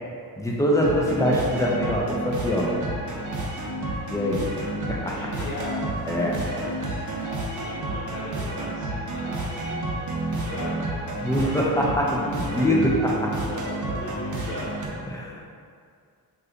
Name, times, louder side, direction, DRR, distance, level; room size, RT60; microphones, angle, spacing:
voice 1, 0.4-2.7 4.1-4.4 4.9-5.2 6.1-6.4 11.2-13.3 15.1-15.4, equal, 10° left, -3 dB, 0.5 m, -24 dB
sound 1, 0.8-14.9, right 2 dB, 55° right, 0.6 m, -30 dB
voice 2, 5.0-5.8 6.5-9.9 10.1-11.9 12.5-15.0, left 1 dB, 60° left, -12 dB, 1.0 m, -39 dB
2.8 x 2.2 x 3.7 m, 2.2 s
cardioid pair, 100°, 37 cm